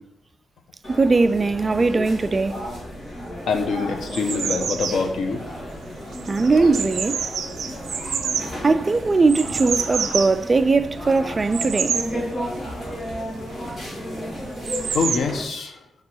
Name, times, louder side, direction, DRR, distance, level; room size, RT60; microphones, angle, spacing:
sound 1, 0.8-15.4, equal, 40° left, 2.8 m, -33 dB
voice 1, 0.9-2.6 6.3-7.2 8.6-12.0, right 3 dB, 30° right, 0.3 m, -20 dB
voice 2, 3.5-5.4 7.9-8.3 14.9-15.8, left 4 dB, 85° left, 0.9 m, -25 dB
sound 2, 3.7-15.2, right 7 dB, 75° right, 0.5 m, -30 dB
5.4 x 4.8 x 5.5 m
wide cardioid pair, 140°, 0 cm